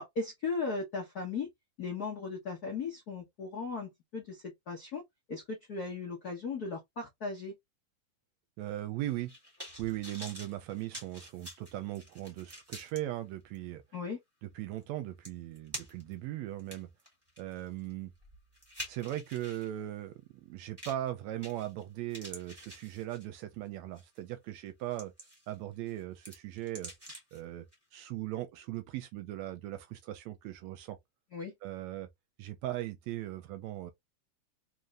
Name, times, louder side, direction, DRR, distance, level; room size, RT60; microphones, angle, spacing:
voice 1, 0.0-1.5 1.8-5.0 5.3-7.5 13.9-14.2 31.3-31.5, left 4 dB, 60° left, 0.9 m, -37 dB
voice 2, 8.6-9.3 9.8-13.8 14.5-16.9 17.4-18.1 18.9-25.1 25.5-26.9 27.3-27.7 27.9-31.0 31.6-32.1 32.4-33.9, right 14 dB, 75° right, 1.7 m, -38 dB
sound 1, 9.1-13.0 13.5-13.6 14.8-14.9 15.2-16.1 16.6-19.7 20.8-21.1 21.4-21.8 22.1-23.4 24.0-24.2 24.7-25.5 25.9-27.4 27.7-27.8, equal, 15° right, 0.7 m, -47 dB
4.3 x 3.4 x 2.4 m
omnidirectional pair, 3.4 m